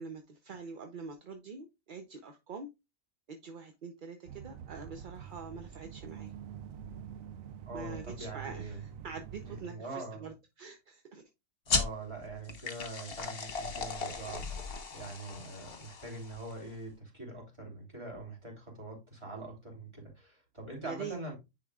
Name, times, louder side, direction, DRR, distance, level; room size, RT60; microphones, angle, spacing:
voice 1, 0.0-2.7 3.3-6.3 7.7-11.3 20.8-21.3, right 5 dB, 45° right, 0.8 m, -45 dB
sound 1, 4.3-9.7, right 8 dB, 80° right, 1.0 m, -46 dB
voice 2, 7.7-8.8 9.4-10.3 11.7-14.4 14.9-21.4, right 2 dB, 20° right, 3.2 m, -43 dB
sound 2, 11.7-16.7, left 4 dB, 45° left, 1.3 m, -36 dB
9.7 x 4.8 x 2.3 m
omnidirectional pair, 1.4 m